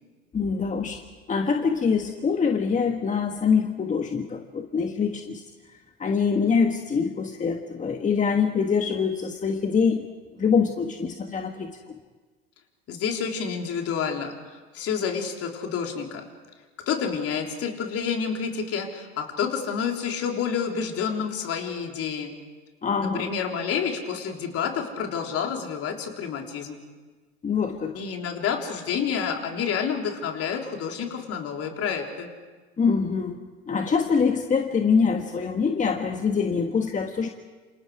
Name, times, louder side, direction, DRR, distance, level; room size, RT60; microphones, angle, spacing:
voice 1, 0.3-1.0 1.3-5.4 6.0-10.0 10.3-11.7 22.8-23.3 27.4-28.0 32.8-37.3, left 5 dB, 25° left, 4 dB, 1.5 m, -24 dB
voice 2, 12.9-16.2 16.9-22.3 23.0-26.8 27.9-32.3, left 7 dB, 45° left, 2 dB, 3.7 m, -29 dB
28.0 x 27.0 x 4.9 m, 1.3 s
hypercardioid pair, 85°, 32 cm